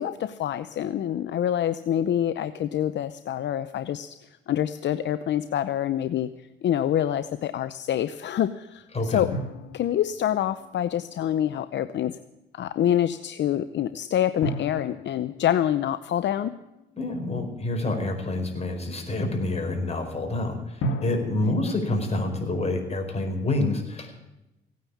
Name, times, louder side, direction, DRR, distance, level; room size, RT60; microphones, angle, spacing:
voice 1, 0.0-9.3 9.7-12.2 12.5-16.5, left 10 dB, 65° left, 11 dB, 0.7 m, -26 dB
voice 2, 8.9-9.3 17.0-24.2, left 2 dB, 30° left, 3 dB, 4.9 m, -27 dB
sound 1, 9.3-11.6 14.4-17.4 20.8-22.7, right 1 dB, 85° left, 2.1 m, -36 dB
17.5 x 9.5 x 8.5 m, 0.95 s
cardioid pair, 90°, 20 cm